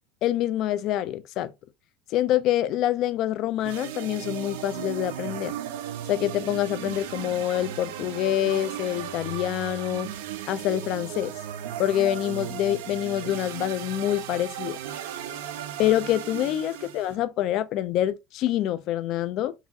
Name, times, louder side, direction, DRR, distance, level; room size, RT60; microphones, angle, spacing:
voice 1, 0.2-1.5 2.1-5.5 6.1-10.1 10.5-11.3 11.8-14.8 15.8-19.5, left 12 dB, 40° left, 0.3 m, -26 dB
sound 1, 3.6-17.2, right 11 dB, 75° right, 0.5 m, -36 dB
3.9 x 2.4 x 2.7 m
cardioid pair, 175°, 0 cm